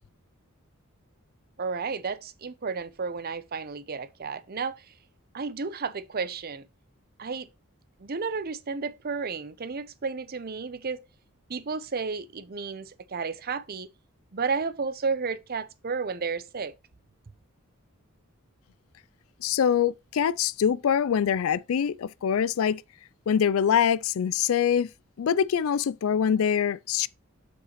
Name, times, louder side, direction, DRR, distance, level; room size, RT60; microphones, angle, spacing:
voice 1, 1.6-4.8 5.3-6.6 7.2-7.5 8.0-11.0 11.5-13.9 14.3-16.7, right 5 dB, 45° right, 0.7 m, -32 dB
voice 2, 19.4-22.8 23.3-24.9 25.2-27.1, left 8 dB, 75° left, 0.4 m, -24 dB
7.5 x 6.7 x 3.0 m
head